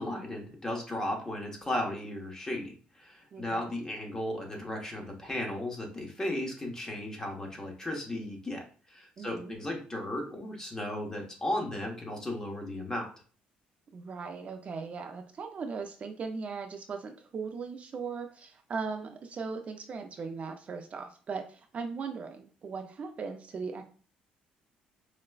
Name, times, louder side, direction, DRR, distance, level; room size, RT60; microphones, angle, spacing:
voice 1, 0.0-8.6 8.9-13.1, left 1 dB, 20° left, 1 dB, 1.1 m, -35 dB
voice 2, 9.2-9.5 13.9-23.8, right 5 dB, 45° right, 4 dB, 0.5 m, -38 dB
4.8 x 2.1 x 2.3 m, 0.40 s
cardioid pair, 85°, 3 cm